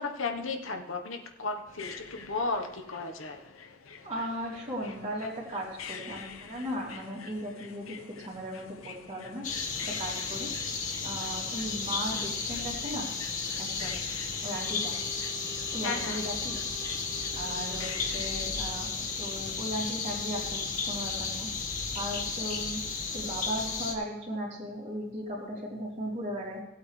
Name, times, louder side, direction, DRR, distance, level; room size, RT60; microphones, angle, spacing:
voice 1, 0.0-3.4 15.8-16.2, left 3 dB, 65° left, 4 dB, 1.2 m, -34 dB
sound 1, 1.7-18.5, left 6 dB, 90° left, 0.9 m, -47 dB
voice 2, 4.0-9.4 9.8-10.5 11.0-13.1 13.6-14.0 14.4-15.0 15.7-16.6 17.3-21.5 21.9-22.8 23.1-26.6, equal, 35° right, -3 dB, 2.9 m, -37 dB
sound 2, 9.4-23.9, left 4 dB, 40° left, 1.5 m, -34 dB
Wind instrument woodwind instrument, 14.4-19.0, right 4 dB, 75° right, 1.4 m, -52 dB
17.0 x 8.6 x 3.3 m, 1.0 s
head